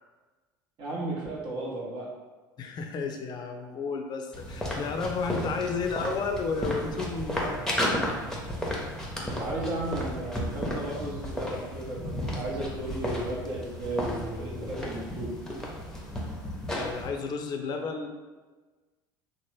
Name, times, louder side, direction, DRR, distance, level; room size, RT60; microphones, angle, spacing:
voice 1, 0.8-2.1 9.2-15.3, right 2 dB, 50° right, -4 dB, 0.8 m, -34 dB
voice 2, 2.6-7.8 16.7-18.1, left 4 dB, 40° left, 4 dB, 0.4 m, -32 dB
sound 1, 4.3-17.1, equal, 5° left, 0.7 m, -33 dB
2.9 x 2.1 x 3.1 m, 1.3 s
hypercardioid pair, 70°, 11 cm